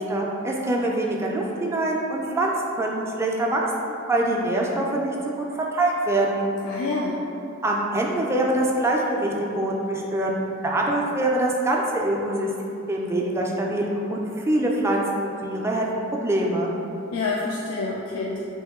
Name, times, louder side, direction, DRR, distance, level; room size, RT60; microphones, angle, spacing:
voice 1, 0.0-6.5 7.6-10.3 10.6-12.5 12.9-15.8 16.1-16.7, right 1 dB, 15° right, -2 dB, 0.3 m, -24 dB
voice 2, 6.6-7.2 17.1-18.4, left 3 dB, 75° left, -3 dB, 0.3 m, -27 dB
3.0 x 2.7 x 3.5 m, 2.7 s
head